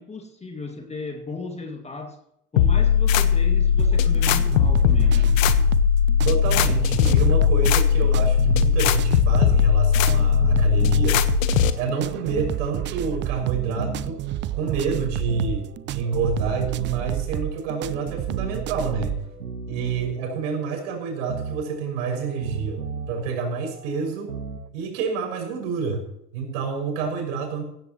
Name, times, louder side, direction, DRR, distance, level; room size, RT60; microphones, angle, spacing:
voice 1, 0.0-2.2 2.5-5.3, left 3 dB, 15° left, 4 dB, 2.0 m, -35 dB
sound 1, 2.6-11.7, left 8 dB, 55° left, 1.3 m, -19 dB
sound 2, 3.8-19.3, right 12 dB, 25° right, 0.6 m, -30 dB
voice 2, 6.2-11.2 11.8-14.2 14.6-19.1 19.7-22.8 23.1-24.3 24.7-26.0 26.3-27.6, right 5 dB, 50° right, 3 dB, 6.3 m, -28 dB
sound 3, 9.5-24.7, right 5 dB, 80° right, 1.9 m, -37 dB
16.5 x 16.0 x 3.0 m, 0.76 s
figure-of-eight pair, 85°, 46 cm